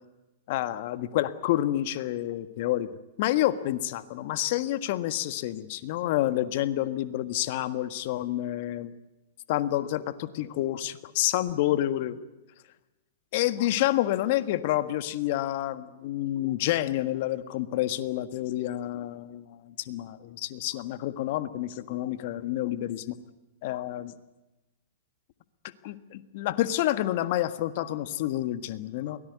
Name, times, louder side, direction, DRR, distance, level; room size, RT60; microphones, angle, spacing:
voice 1, 0.5-2.9 3.2-8.9 9.5-12.2 13.3-23.2 23.6-24.1 25.8-29.2, left 14 dB, 55° left, 12 dB, 1.5 m, -29 dB
23.0 x 18.0 x 9.5 m, 1.1 s
hypercardioid pair, 110°, 0 cm